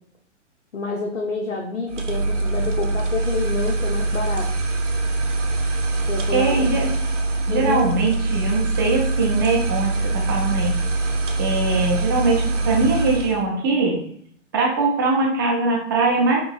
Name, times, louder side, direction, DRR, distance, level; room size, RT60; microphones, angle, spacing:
voice 1, 0.7-4.5 6.1-6.8 7.5-7.8, left 4 dB, 85° left, 0 dB, 0.7 m, -28 dB
sound 1, 1.9-13.4, right 2 dB, 75° right, 0.7 m, -23 dB
voice 2, 6.3-6.9 7.5-10.7 11.4-14.0 14.5-16.4, right 3 dB, 20° right, -1 dB, 0.4 m, -21 dB
3.9 x 3.0 x 2.2 m, 0.64 s
figure-of-eight pair, 110°, 37 cm